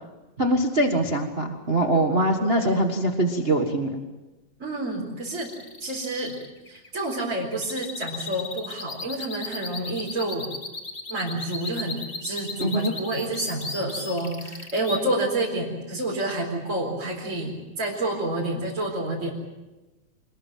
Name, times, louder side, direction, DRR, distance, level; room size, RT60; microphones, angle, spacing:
voice 1, 0.4-4.0 12.6-12.9, right 1 dB, 50° right, 4 dB, 0.7 m, -23 dB
voice 2, 2.4-2.9 4.6-5.5 5.8-6.4 6.7-10.5 11.1-19.3, right 1 dB, 20° right, -4 dB, 4.2 m, -29 dB
sound 1, 5.2-15.0, left 3 dB, 55° left, 0.6 m, -36 dB
26.5 x 20.5 x 7.5 m, 1.1 s
omnidirectional pair, 4.1 m